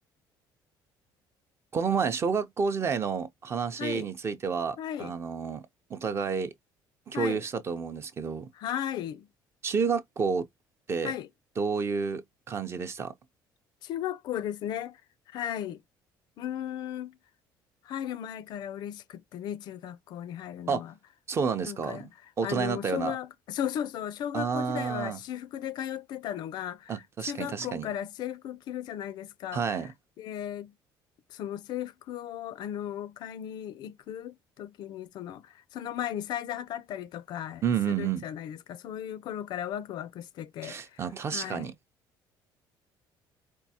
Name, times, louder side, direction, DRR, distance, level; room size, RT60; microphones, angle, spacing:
voice 1, 1.7-5.6 5.9-6.5 7.1-8.5 9.6-10.4 10.9-11.1 11.6-13.1 20.7-20.8 21.3-22.1 22.4-23.2 24.3-25.2 26.9-27.9 29.5-29.9 37.6-38.2 40.6-41.7, right 6 dB, 30° right, 0.5 m, -30 dB
voice 2, 4.8-5.2 7.1-7.4 8.5-9.3 11.0-11.3 13.8-15.0 15.3-15.8 16.4-17.2 17.8-20.9 21.6-22.1 22.4-29.8 30.2-30.7 31.3-41.0 41.3-41.7, left 10 dB, 60° left, 0.4 m, -36 dB
4.4 x 2.2 x 2.8 m
cardioid pair, 140°, 8 cm